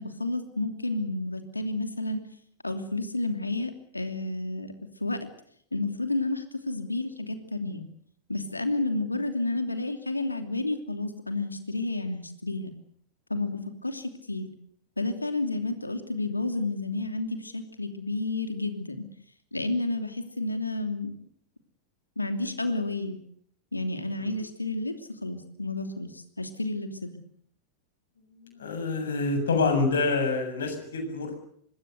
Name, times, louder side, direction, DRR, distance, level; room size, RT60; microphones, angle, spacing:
voice 1, 0.0-2.2 2.6-4.7 5.0-5.2 5.7-7.8 8.3-12.7 13.3-14.5 15.0-19.0 19.5-21.1 22.2-23.2 23.7-27.1, left 2 dB, 85° left, 8 dB, 2.9 m, -31 dB
voice 2, 28.4-31.4, left 3 dB, 65° left, 6 dB, 7.4 m, -27 dB
26.0 x 20.5 x 8.0 m, 0.65 s
figure-of-eight pair, 90°, 0 cm